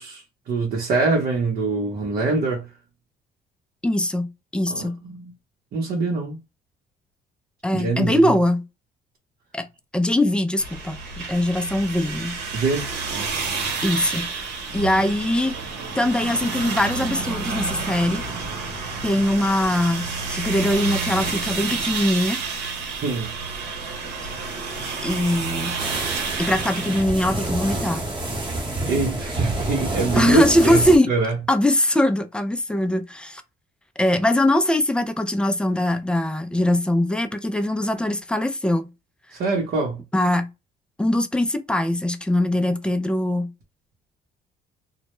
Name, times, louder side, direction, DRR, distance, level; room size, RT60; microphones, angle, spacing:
voice 1, 0.0-2.7 4.7-5.3 5.7-6.4 7.7-8.3 12.5-13.3 23.0-23.3 28.9-31.4 39.3-40.0, right 3 dB, 60° right, 0.7 m, -24 dB
voice 2, 3.8-5.0 7.6-8.6 9.5-9.7 9.9-12.4 13.8-14.3 14.7-15.6 16.0-18.2 19.0-22.4 25.0-25.7 26.4-28.0 30.2-31.1 31.5-33.4 34.0-38.9 40.1-40.5 41.0-43.5, left 1 dB, 5° left, 0.3 m, -21 dB
sound 1, 10.6-27.0, right 4 dB, 85° right, 0.9 m, -30 dB
sound 2, 25.8-31.0, right 2 dB, 30° right, 0.9 m, -28 dB
2.1 x 2.1 x 2.9 m
cardioid pair, 110°, 17 cm